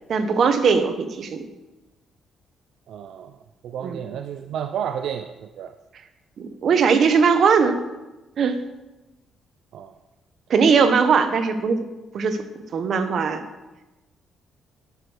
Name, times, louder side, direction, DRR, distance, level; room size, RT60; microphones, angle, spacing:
voice 1, 0.1-1.4 3.8-4.0 6.4-7.8 8.4-8.6 10.5-11.8 12.1-12.4 12.7-13.4, right 5 dB, 60° right, 9 dB, 1.0 m, -19 dB
voice 2, 2.9-3.4 3.6-5.7 9.7-9.9, right 8 dB, 75° right, 9 dB, 0.4 m, -31 dB
11.0 x 6.2 x 5.0 m, 1.1 s
cardioid pair, 90°, 0 cm